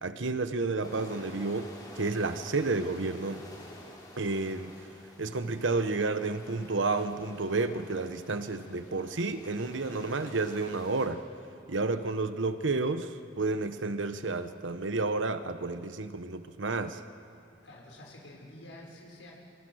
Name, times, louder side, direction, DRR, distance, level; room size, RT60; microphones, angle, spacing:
voice 1, 0.0-1.7 1.9-3.4 4.2-4.7 5.2-11.2 11.7-17.0, right 3 dB, 90° right, 10 dB, 1.0 m, -31 dB
sound 1, 0.8-11.1, left 1 dB, 20° left, 4.5 m, -50 dB
voice 2, 17.6-19.3, left 1 dB, 90° left, -1 dB, 6.1 m, -49 dB
27.5 x 27.0 x 6.4 m, 2.6 s
head